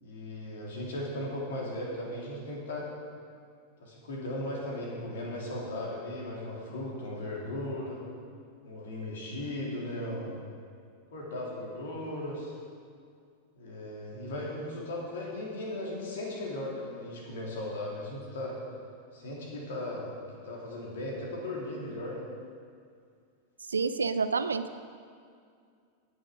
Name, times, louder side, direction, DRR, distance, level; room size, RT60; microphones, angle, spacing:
voice 1, 0.0-2.9 3.8-8.0 8.6-10.4 11.1-12.5 13.6-18.6 19.1-20.1 20.4-22.2, left 1 dB, 60° left, -3 dB, 3.2 m, -37 dB
voice 2, 23.7-24.8, right 4 dB, 75° right, 12 dB, 0.5 m, -29 dB
17.0 x 6.5 x 5.2 m, 2.3 s
figure-of-eight pair, 90°, 0 cm